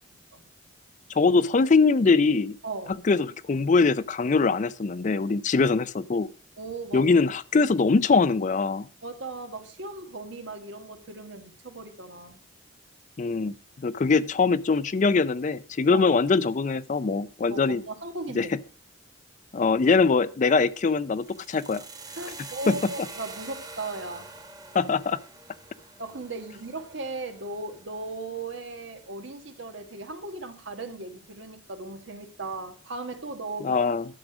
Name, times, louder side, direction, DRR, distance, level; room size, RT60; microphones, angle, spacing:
voice 1, 1.1-2.6 3.1-6.3 6.9-8.9 13.2-13.6 13.8-17.8 18.4-18.5 19.5-21.8 22.7-22.8 24.7-25.2 33.6-34.0, left 4 dB, 40° left, 0.4 m, -22 dB
voice 2, 2.6-3.0 5.6-5.7 6.6-7.1 9.0-12.4 15.9-16.1 17.5-18.5 22.2-24.3 26.0-33.8, right 3 dB, 70° right, 1.4 m, -37 dB
sound 1, 21.1-29.2, right 3 dB, 20° right, 1.1 m, -45 dB
11.5 x 6.2 x 5.0 m
head